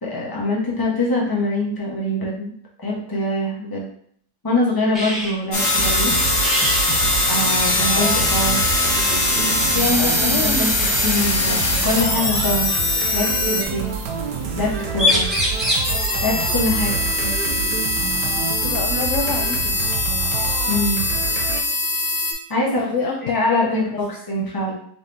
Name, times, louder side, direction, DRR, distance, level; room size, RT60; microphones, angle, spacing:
voice 1, 0.0-2.5 2.8-3.9 4.4-6.1 7.3-8.6 9.7-12.8 13.1-13.9 14.6-15.3 16.2-16.9 17.2-17.3 20.7-21.1 22.5-22.8 23.2-24.8, left 2 dB, 15° left, -3 dB, 0.9 m, -23 dB
sound 1, 4.9-5.3 5.6-5.9 6.4-6.8 7.1-7.2 7.5-8.1 9.2-9.5 11.2-11.3 12.4-13.2 14.6-14.7 14.9-15.9 17.9-18.0 18.4-19.4, left 1 dB, ahead, 1.5 m, -24 dB
sound 2, 5.5-22.3, left 2 dB, 45° left, 1.5 m, -22 dB
sound 3, 5.8-21.6, right 6 dB, 80° right, 1.2 m, -28 dB
voice 2, 10.0-10.6 18.6-19.8 22.8-23.3 23.6-24.1, left 5 dB, 70° left, 1 dB, 0.8 m, -27 dB
4.1 x 3.7 x 3.4 m, 0.63 s
omnidirectional pair, 1.7 m